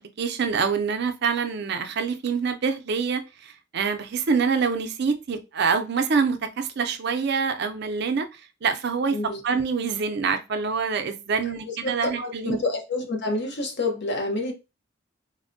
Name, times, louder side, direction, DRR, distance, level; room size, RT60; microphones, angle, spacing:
voice 1, 0.0-9.2 9.4-12.6, right 5 dB, 55° right, 0.5 m, -26 dB
voice 2, 11.8-14.5, left 2 dB, 60° left, 0.8 m, -28 dB
4.1 x 2.1 x 2.5 m
head